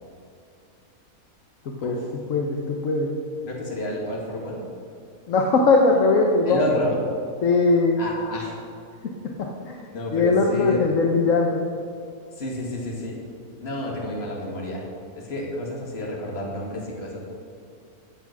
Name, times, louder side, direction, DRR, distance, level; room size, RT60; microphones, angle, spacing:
voice 1, 2.3-3.1 5.3-6.6 7.4-8.0 9.4-9.9 10.1-11.6, left 3 dB, 60° left, 1 dB, 1.4 m, -20 dB
voice 2, 3.4-4.6 6.5-7.0 8.0-8.7 9.9-10.9 12.4-13.2 13.6-14.9 15.2-17.2, left 1 dB, 45° left, -2 dB, 2.5 m, -30 dB
14.0 x 8.1 x 6.1 m, 2.4 s
omnidirectional pair, 1.6 m